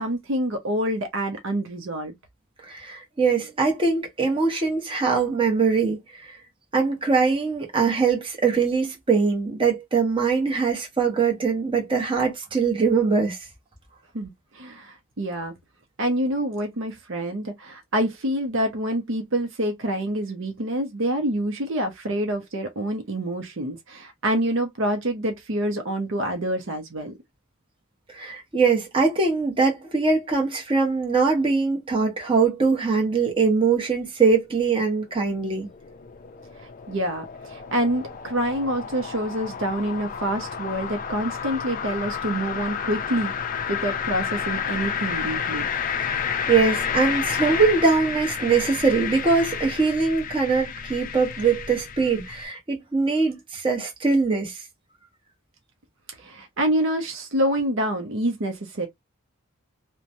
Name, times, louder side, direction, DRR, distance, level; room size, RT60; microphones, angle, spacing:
voice 1, 0.0-2.1 14.1-15.5 16.0-27.1 36.6-43.3 43.7-45.7 56.2-58.9, right 1 dB, 60° right, 0.7 m, -27 dB
voice 2, 2.6-6.3 6.7-13.4 28.1-35.7 46.0-54.6, right 4 dB, 25° right, 0.9 m, -22 dB
sound 1, 34.9-52.4, left 7 dB, 40° left, 0.4 m, -31 dB
3.0 x 2.2 x 2.5 m
head